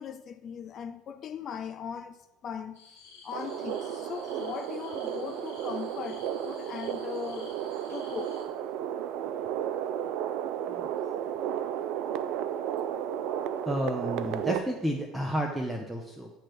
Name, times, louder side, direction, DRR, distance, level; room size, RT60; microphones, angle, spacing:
voice 1, 0.0-2.8 3.2-7.5 7.9-8.4, left 8 dB, 40° left, 0.3 m, -39 dB
sound 1, 2.7-8.4, left 4 dB, 70° left, 1.6 m, -53 dB
sound 2, 3.3-14.6, right 10 dB, 55° right, 0.3 m, -33 dB
voice 2, 13.7-16.3, equal, 5° right, 0.6 m, -31 dB
8.7 x 3.0 x 4.4 m
figure-of-eight pair, 65°, 0 cm